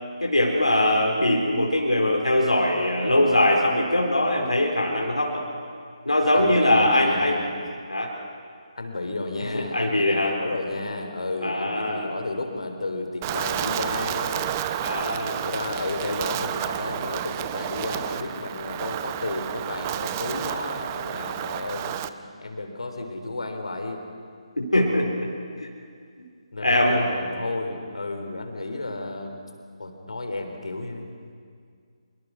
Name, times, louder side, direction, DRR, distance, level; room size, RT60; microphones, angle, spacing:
voice 1, 0.2-5.4 6.1-7.4 7.9-8.1 9.7-10.3 11.4-12.1 14.8-15.5 24.6-25.1 26.6-27.0, left 1 dB, 90° left, -1 dB, 4.0 m, -21 dB
voice 2, 6.3-7.6 8.8-14.6 15.3-24.0 26.5-29.4 29.8-31.1, left 2 dB, 70° left, 5 dB, 3.5 m, -32 dB
Wind, 13.2-22.1, right 12 dB, 25° right, 0.7 m, -31 dB
25.0 x 23.5 x 6.2 m, 2.2 s
figure-of-eight pair, 145°, 3 cm